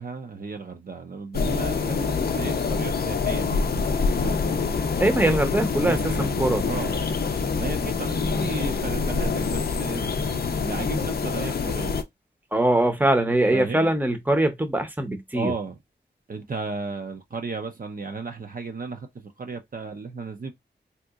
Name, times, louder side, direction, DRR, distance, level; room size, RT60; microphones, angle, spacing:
voice 1, 0.0-4.5 5.8-7.0 7.5-10.1 10.6-12.0 13.5-13.9 15.3-15.8 16.3-20.5, right 4 dB, 50° right, 0.6 m, -34 dB
sound 1, 1.3-12.0, left 5 dB, 55° left, 0.5 m, -26 dB
voice 2, 5.0-6.6 12.5-15.5, right 1 dB, 10° right, 0.7 m, -22 dB
3.5 x 2.8 x 2.4 m
wide cardioid pair, 65°, 19 cm